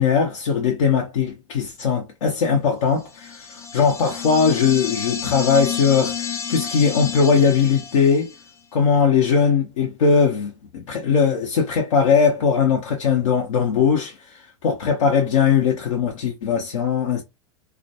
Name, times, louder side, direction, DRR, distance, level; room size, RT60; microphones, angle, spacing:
voice 1, 0.0-8.3 8.7-17.2, left 6 dB, 80° left, 0.6 m, -20 dB
sound 1, 3.1-8.5, left 7 dB, 15° left, 0.4 m, -30 dB
2.4 x 2.1 x 2.6 m
hypercardioid pair, 105°, 16 cm